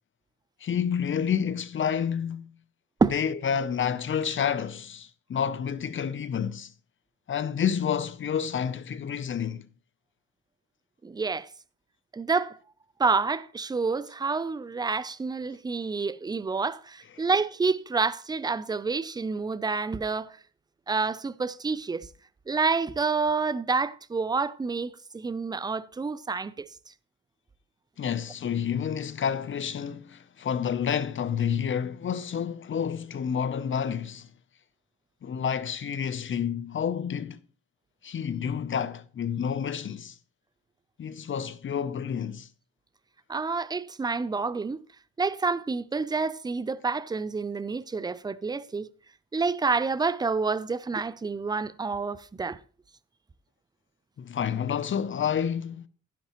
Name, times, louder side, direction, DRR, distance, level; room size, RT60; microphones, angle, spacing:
voice 1, 0.6-2.5 3.1-6.7 7.3-9.7 28.0-34.3 35.2-37.4 38.0-40.2 41.0-42.5 54.2-55.8, left 8 dB, 40° left, 0.6 m, -29 dB
voice 2, 11.0-11.5 12.1-12.6 13.0-20.4 20.9-22.1 22.5-26.7 43.3-44.8 45.2-48.9 49.3-52.6, right 4 dB, 15° right, 0.4 m, -28 dB
11.5 x 10.5 x 3.0 m
cardioid pair, 90°, 30 cm